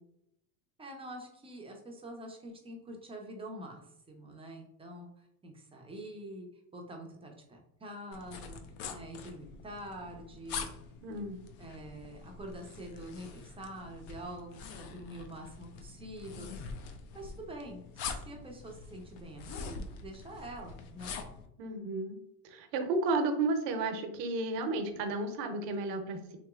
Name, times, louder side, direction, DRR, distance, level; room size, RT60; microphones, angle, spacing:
voice 1, 0.8-6.5 6.7-8.6 8.9-10.7 11.6-16.5 17.1-21.2, right 1 dB, 15° right, 1 dB, 0.4 m, -46 dB
sound 1, 8.1-21.5, left 5 dB, 65° left, 0.6 m, -45 dB
voice 2, 11.0-11.4 21.6-22.2 22.4-26.4, right 3 dB, 80° right, 6 dB, 0.8 m, -32 dB
3.0 x 2.9 x 2.3 m, 0.78 s
supercardioid pair, 105°, 49 cm